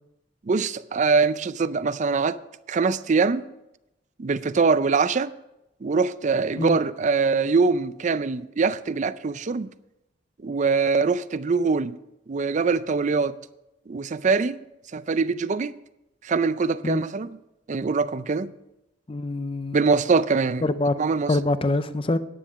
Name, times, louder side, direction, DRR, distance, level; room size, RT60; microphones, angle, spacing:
voice 1, 0.5-2.4 2.7-3.5 4.2-5.3 5.8-9.7 10.4-12.0 12.3-13.3 13.9-14.6 14.9-15.8 16.2-17.4 17.7-18.5 19.7-20.7 21.0-21.4, right 4 dB, 40° right, 0.4 m, -23 dB
voice 2, 19.1-19.8 20.6-21.0 21.3-22.2, left 2 dB, 30° left, 0.6 m, -24 dB
10.0 x 9.8 x 5.1 m
head